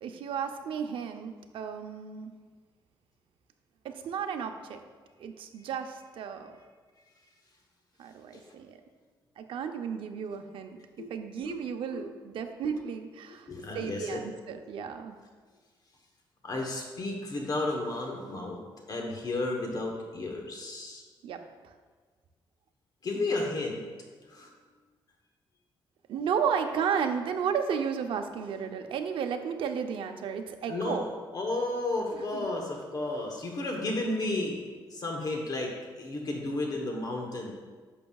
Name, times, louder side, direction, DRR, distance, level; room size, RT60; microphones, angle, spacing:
voice 1, 0.0-2.3 3.8-4.8 5.2-6.6 8.0-8.8 9.4-13.5 13.7-15.2 21.2-21.7 26.1-31.0 32.1-32.5, right 7 dB, 80° right, 6 dB, 0.6 m, -33 dB
voice 2, 13.5-14.2 16.4-18.6 18.9-21.0 23.0-23.8 24.3-24.5 30.7-34.6 34.9-37.5, left 2 dB, 45° left, 1 dB, 1.1 m, -33 dB
11.0 x 6.8 x 2.3 m, 1.5 s
cardioid pair, 140°, 9 cm